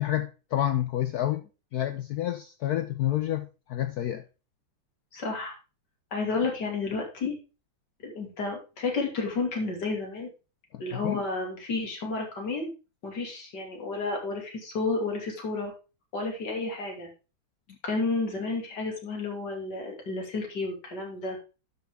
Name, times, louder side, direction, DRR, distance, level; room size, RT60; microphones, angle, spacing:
voice 1, 0.0-4.2 10.7-11.2, left 12 dB, 90° left, 0.8 m, -29 dB
voice 2, 5.1-5.5 6.1-7.4 8.0-10.3 10.8-12.7 13.0-15.7 16.1-17.1 17.8-21.4, left 3 dB, 50° left, 3.2 m, -31 dB
11.5 x 5.8 x 3.6 m
omnidirectional pair, 2.3 m